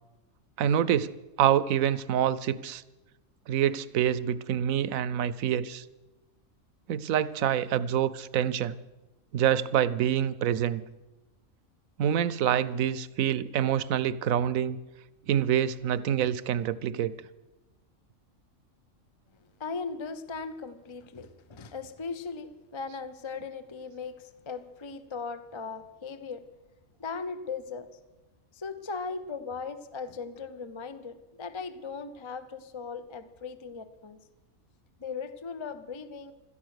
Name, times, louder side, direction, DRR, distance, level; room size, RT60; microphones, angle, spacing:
voice 1, 0.6-1.1 1.4-2.8 3.5-5.8 6.9-8.8 9.3-10.8 12.0-14.8 15.3-17.1, right 10 dB, 80° right, 17 dB, 1.1 m, -26 dB
voice 2, 19.6-26.4 27.0-27.9 28.5-34.2 35.0-36.3, left 5 dB, 30° left, 11 dB, 0.6 m, -38 dB
17.0 x 13.0 x 6.5 m, 1.1 s
omnidirectional pair, 1.4 m